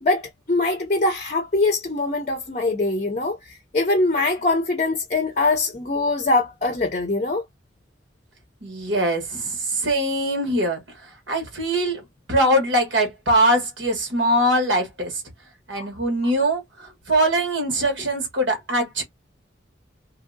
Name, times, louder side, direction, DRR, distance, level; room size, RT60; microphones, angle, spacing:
voice 1, 0.0-7.4 15.8-15.9, left 2 dB, 40° left, 0.5 m, -23 dB
voice 2, 8.6-15.2 15.7-19.0, right 1 dB, 85° right, 1.4 m, -22 dB
2.7 x 2.7 x 2.6 m
head